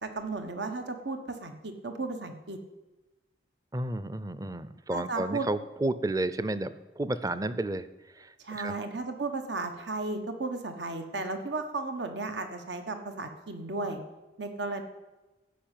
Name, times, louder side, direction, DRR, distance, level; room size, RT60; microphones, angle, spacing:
voice 1, 0.0-2.6 4.9-5.5 8.4-14.0 14.4-14.8, right 3 dB, 80° right, 6 dB, 1.2 m, -34 dB
voice 2, 3.7-7.9 8.2-8.7, right 2 dB, 20° right, 14 dB, 0.5 m, -32 dB
15.0 x 5.5 x 9.0 m, 1.1 s
head